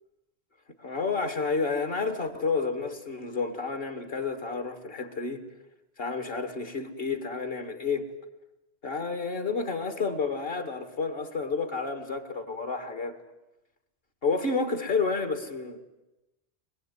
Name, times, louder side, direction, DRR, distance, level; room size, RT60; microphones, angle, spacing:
voice 1, 0.8-5.4 6.0-8.1 8.8-13.2 14.2-15.8, left 4 dB, 50° left, 2.6 m, -30 dB
24.0 x 21.0 x 9.6 m
omnidirectional pair, 1.2 m